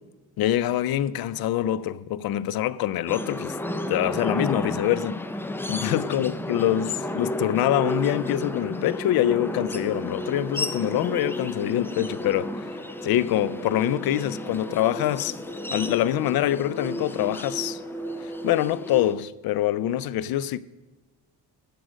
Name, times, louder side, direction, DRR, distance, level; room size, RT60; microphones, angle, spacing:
voice 1, 0.4-3.5 3.9-5.2 5.7-12.5 13.0-15.3 15.7-17.8 18.4-20.6, left 12 dB, 65° left, 0.5 m, -25 dB
sound 1, 3.1-19.1, left 1 dB, 5° left, 0.4 m, -32 dB
sound 2, 6.5-18.6, equal, 30° left, 2.6 m, -45 dB
11.5 x 7.7 x 6.2 m
cardioid pair, 145°, 39 cm